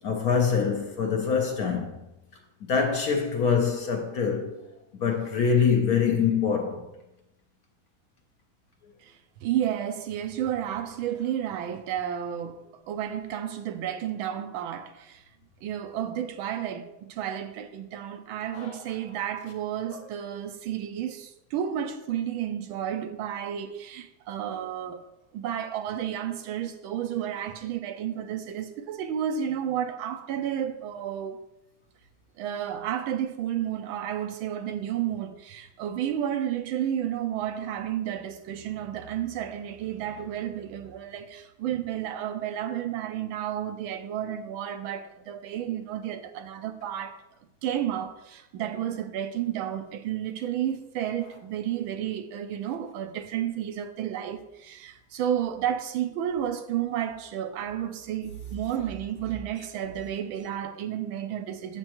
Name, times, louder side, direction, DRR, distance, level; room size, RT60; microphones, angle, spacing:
voice 1, 0.0-2.0 2.6-4.6 4.9-6.8 18.5-18.8 19.9-20.0, left 6 dB, 60° left, 1.1 m, -25 dB
voice 2, 9.4-15.2 15.6-25.0 25.3-31.4 32.4-47.2 47.6-61.8, right 10 dB, 80° right, 1.5 m, -31 dB
8.8 x 7.3 x 3.0 m
omnidirectional pair, 2.2 m